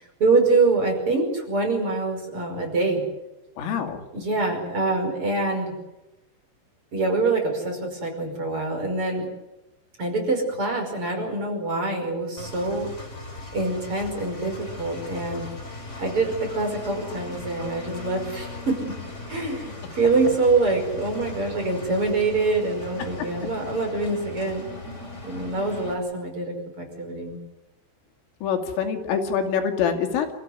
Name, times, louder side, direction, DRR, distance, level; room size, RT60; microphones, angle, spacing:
voice 1, 0.0-3.0 4.1-5.7 6.9-9.3 10.0-12.9 13.5-15.5 16.0-19.0 19.3-24.6 25.2-27.4, right 3 dB, 25° right, 2 dB, 5.9 m, -25 dB
voice 2, 3.6-4.0 28.4-30.3, left 7 dB, 85° left, 5 dB, 5.1 m, -25 dB
Engine, 12.4-25.9, left 2 dB, 15° left, 3.4 m, -38 dB
29.0 x 15.0 x 9.6 m, 1.0 s
omnidirectional pair, 5.7 m